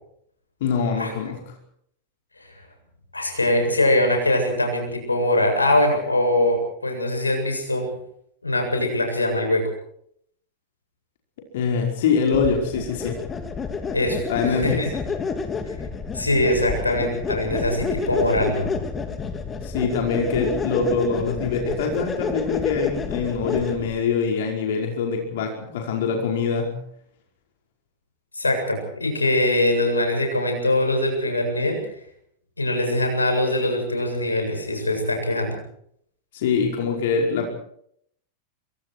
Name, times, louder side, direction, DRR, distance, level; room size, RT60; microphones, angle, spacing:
voice 1, 0.6-1.6 11.5-13.2 14.3-14.8 19.6-26.8 36.3-37.5, left 5 dB, 55° left, 1 dB, 5.1 m, -24 dB
voice 2, 3.1-7.9 8.4-9.6 13.9-14.9 16.1-18.7 28.3-31.8 32.6-35.6, left 1 dB, 80° left, 4 dB, 7.7 m, -22 dB
sound 1, 12.3-24.0, left 5 dB, 20° left, 3.3 m, -29 dB
28.5 x 23.5 x 4.8 m, 0.68 s
figure-of-eight pair, 90°, 0 cm